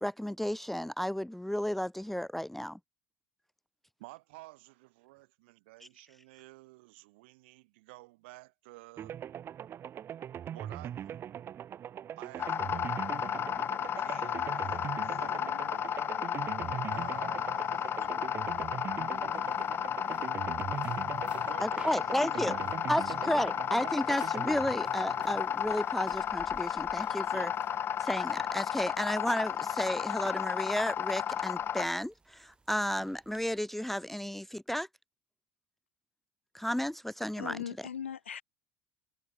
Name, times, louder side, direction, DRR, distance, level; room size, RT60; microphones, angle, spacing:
voice 1, 0.0-2.8 21.6-22.6 22.9-27.5 28.0-34.9 36.5-37.6, equal, 5° left, 0.6 m, -33 dB
voice 2, 4.0-9.3 10.5-11.3 12.2-13.4 13.8-15.9 16.9-17.7 18.0-18.2 21.4-22.2 22.5-23.0 23.2-23.4 27.3-27.5, right 22 dB, 65° right, 6.3 m, -52 dB
sound 1, 9.0-25.9, right 9 dB, 35° right, 0.9 m, -41 dB
sound 2, 12.4-31.9, left 9 dB, 35° left, 0.8 m, -33 dB
sound 3, 18.0-33.6, right 3 dB, 15° right, 2.5 m, -56 dB
voice 3, 37.4-38.4, left 8 dB, 80° left, 0.9 m, -39 dB
figure-of-eight pair, 70°, 7 cm